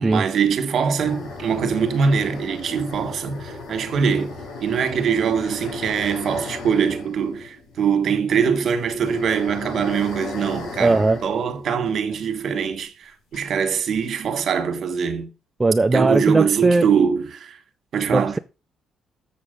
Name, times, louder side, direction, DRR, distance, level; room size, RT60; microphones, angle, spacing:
voice 1, 0.0-15.3 15.9-17.6 17.9-18.4, right 6 dB, 60° right, 1.6 m, -23 dB
sound 1, 1.0-12.4 12.7-12.8 13.3-14.1, left 3 dB, 90° left, 4.9 m, -36 dB
voice 2, 10.8-11.2 15.6-16.9 18.1-18.4, right 2 dB, 20° right, 0.4 m, -18 dB
7.2 x 6.7 x 5.2 m
cardioid pair, 90°, 0 cm